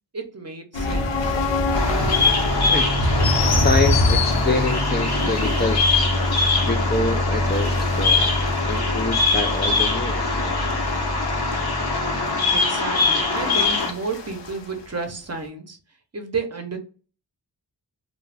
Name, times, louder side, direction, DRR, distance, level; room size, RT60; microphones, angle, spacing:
voice 1, 0.1-1.4 12.5-15.8 16.1-16.8, right 4 dB, 35° right, 5 dB, 0.7 m, -31 dB
sound 1, 0.7-14.6, left 1 dB, 85° left, 0.6 m, -24 dB
Bird vocalization bird call bird song, 1.7-13.9, left 4 dB, 60° left, 0.9 m, -23 dB
voice 2, 3.6-6.2 6.6-10.4, left 3 dB, 25° left, 3 dB, 0.3 m, -26 dB
2.4 x 2.2 x 3.3 m, 0.38 s
wide cardioid pair, 55°, 42 cm